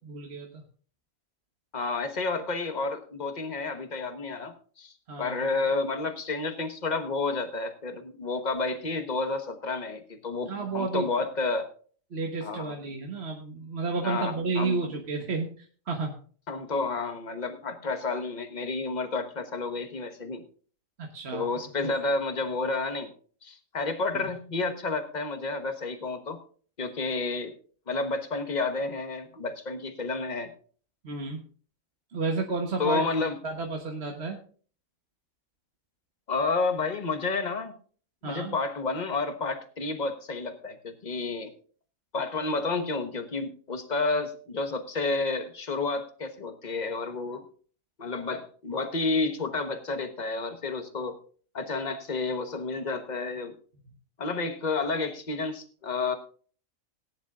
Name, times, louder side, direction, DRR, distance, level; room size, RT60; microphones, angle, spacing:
voice 1, 0.0-0.6 5.1-5.5 10.5-11.1 12.1-16.1 21.0-21.4 24.1-24.2 31.0-31.4 32.1-33.1 33.4-34.4 38.2-38.5, right 3 dB, 50° right, 2 dB, 1.5 m, -31 dB
voice 2, 1.7-4.9 5.2-11.7 12.4-12.7 14.0-14.8 16.5-20.4 21.3-23.1 23.4-26.4 26.8-27.6 27.9-30.5 32.8-33.4 36.3-37.7 38.2-41.5 42.1-47.5 48.0-51.2 51.5-53.6 54.2-56.1, left 3 dB, 35° left, 8 dB, 1.2 m, -30 dB
18.5 x 10.0 x 2.5 m, 0.42 s
omnidirectional pair, 1.4 m